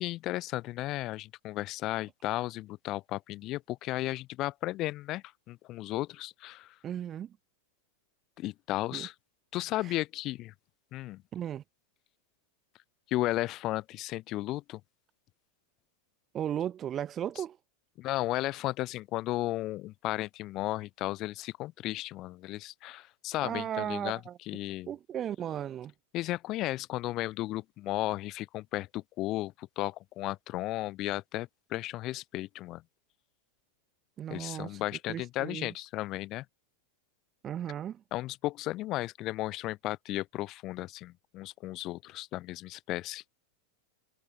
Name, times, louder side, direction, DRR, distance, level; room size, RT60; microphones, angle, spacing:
voice 1, 0.0-6.7 8.4-9.1 9.5-10.5 10.9-11.2 13.1-14.8 18.0-24.2 24.5-24.9 26.1-32.8 34.3-36.4 38.1-43.2, left 17 dB, 35° left, 1.6 m, -34 dB
voice 2, 6.8-7.4 8.9-9.1 9.8-9.9 11.3-11.6 16.3-17.6 23.4-24.4 24.9-25.9 34.2-34.8 35.1-35.7 37.4-38.0, right 10 dB, 25° right, 3.4 m, -36 dB
figure-of-eight pair, 90°, 0 cm